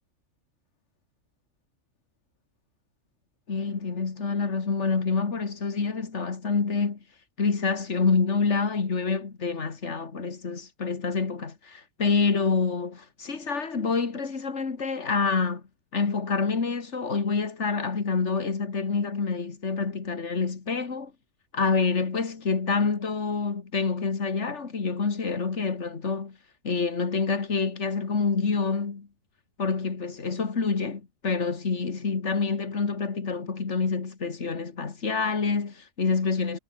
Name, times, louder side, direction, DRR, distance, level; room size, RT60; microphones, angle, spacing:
voice 1, 3.5-7.0 7.4-15.6 15.9-21.1 21.5-26.4 26.6-29.1 29.6-36.6, left 4 dB, 55° left, 2.4 m, -27 dB
omnidirectional pair, 1.4 m